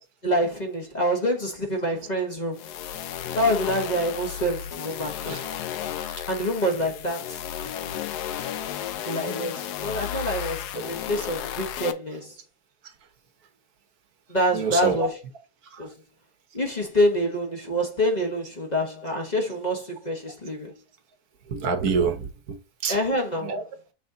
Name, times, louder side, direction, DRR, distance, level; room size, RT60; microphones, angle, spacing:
voice 1, 0.2-2.7 3.3-5.4 6.3-7.4 9.0-12.3 14.3-15.1 15.8-15.9 16.5-20.7 22.9-23.5, equal, 30° left, 1.4 m, -26 dB
sound 1, 2.5-11.9, left 10 dB, 90° left, 1.3 m, -33 dB
voice 2, 14.5-15.1 15.6-15.9 21.5-23.0 23.3-23.6, right 5 dB, 75° right, 1.6 m, -28 dB
6.7 x 4.2 x 3.9 m
omnidirectional pair, 1.6 m